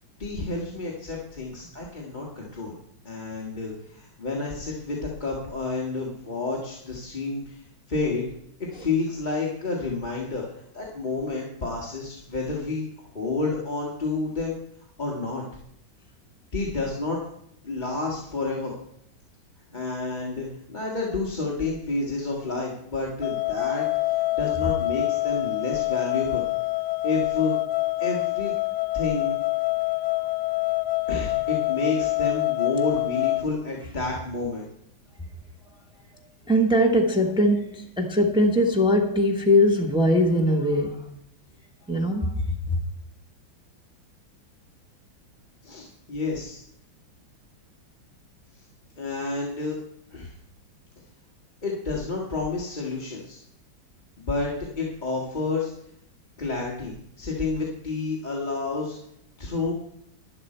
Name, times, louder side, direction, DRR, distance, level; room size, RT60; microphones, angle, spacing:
voice 1, 0.2-2.7 3.0-7.6 7.9-8.2 8.7-10.4 10.7-14.6 15.0-15.4 16.5-17.2 17.6-18.7 19.7-26.5 27.0-27.5 28.0-28.5 28.9-29.4 31.1-34.6 45.6-46.6 49.0-49.7 50.1-50.3 51.6-53.4 54.2-55.7 56.4-59.0 59.4-59.7, left 3 dB, 25° left, -3 dB, 1.6 m, -30 dB
sound 1, 23.2-33.5, left 21 dB, 70° left, 1.4 m, -26 dB
voice 2, 36.1-41.0 41.9-42.4, left 1 dB, 5° right, 1 dB, 0.9 m, -21 dB
11.5 x 11.5 x 4.4 m, 0.72 s
omnidirectional pair, 2.2 m